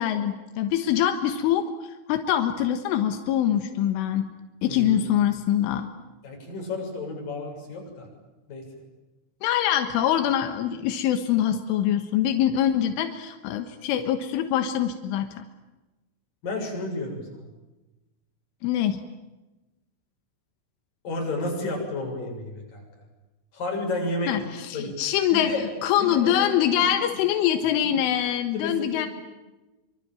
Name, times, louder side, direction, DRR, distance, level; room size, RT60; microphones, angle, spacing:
voice 1, 0.0-1.7 2.1-4.3 4.6-5.9 9.4-15.3 18.6-19.0 24.3-29.1, left 10 dB, 90° left, 7 dB, 3.9 m, -24 dB
voice 2, 4.7-5.0 6.2-8.1 8.5-8.7 16.4-17.5 21.0-22.8 23.5-24.3 24.7-25.0 25.3-25.6 26.0-26.4 26.7-26.9 27.8-27.9 28.5-29.1, left 2 dB, 45° left, 1 dB, 8.7 m, -31 dB
26.0 x 25.0 x 9.1 m, 1.1 s
omnidirectional pair, 5.6 m